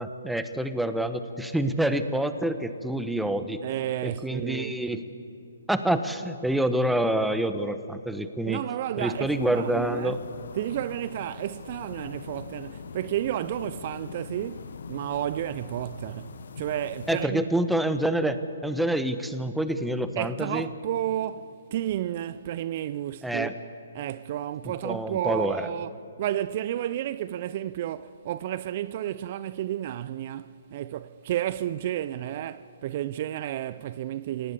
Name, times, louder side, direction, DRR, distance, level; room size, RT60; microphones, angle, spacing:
voice 1, 0.0-3.6 4.0-5.0 5.7-8.6 9.0-10.2 17.1-20.7 23.2-23.5 24.8-25.7, right 1 dB, ahead, 1.2 m, -27 dB
voice 2, 3.6-4.8 8.5-10.2 10.5-17.5 20.2-23.5 23.9-34.5, right 12 dB, 45° right, 0.6 m, -32 dB
sound 1, 9.0-17.2, left 5 dB, 70° left, 1.3 m, -42 dB
29.0 x 18.0 x 8.4 m
hypercardioid pair, 135°, 0 cm